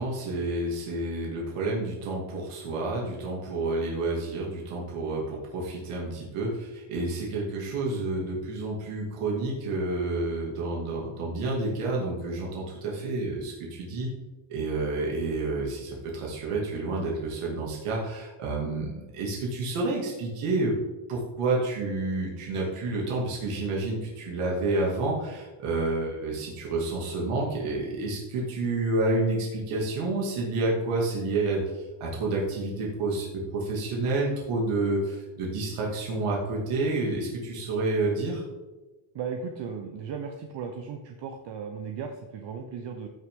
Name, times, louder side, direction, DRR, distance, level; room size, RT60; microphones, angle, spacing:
voice 1, 0.0-14.1 14.5-20.8 21.1-38.4, right 2 dB, 90° right, -2 dB, 2.6 m, -29 dB
voice 2, 39.1-43.1, right 6 dB, 55° right, 4 dB, 1.0 m, -36 dB
14.5 x 6.2 x 3.8 m, 1.2 s
cardioid pair, 140°, 50 cm